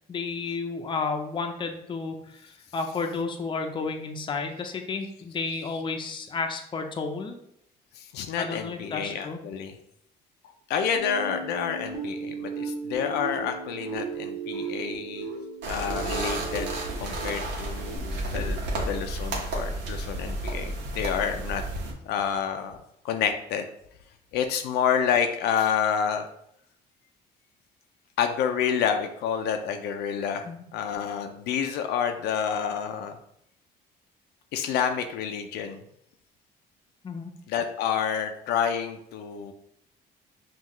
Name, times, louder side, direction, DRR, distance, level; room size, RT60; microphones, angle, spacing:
voice 1, 0.1-7.4 8.4-9.4 30.4-30.6 37.0-37.3, left 4 dB, 30° left, 4 dB, 0.6 m, -32 dB
voice 2, 8.0-9.7 10.7-15.3 15.7-16.7 17.0-21.6 22.0-22.8 23.0-23.6 24.3-26.3 28.2-30.5 30.7-33.2 34.5-35.8 37.5-39.5, left 7 dB, 80° left, 6 dB, 0.5 m, -28 dB
sound 1, 10.9-18.0, right 4 dB, 60° right, 1.6 m, -36 dB
sound 2, 15.6-21.9, right 1 dB, 85° right, 1.0 m, -32 dB
5.6 x 2.4 x 3.0 m, 0.74 s
cardioid pair, 110°, 17 cm